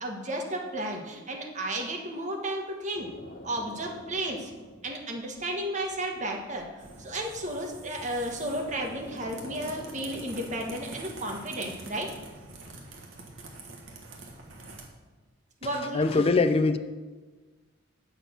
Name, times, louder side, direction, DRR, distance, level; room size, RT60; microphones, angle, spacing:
voice 1, 0.0-3.1 3.4-4.5 4.8-6.7 7.0-12.1 15.6-16.3, right 1 dB, 40° right, 1 dB, 1.5 m, -33 dB
sound 1, 2.9-11.1, left 1 dB, 50° left, 1.0 m, -49 dB
sound 2, 6.8-14.9, right 3 dB, 80° right, 1.5 m, -46 dB
voice 2, 15.7-16.8, left 3 dB, 30° left, 10 dB, 0.4 m, -23 dB
8.4 x 6.6 x 6.1 m, 1.3 s
head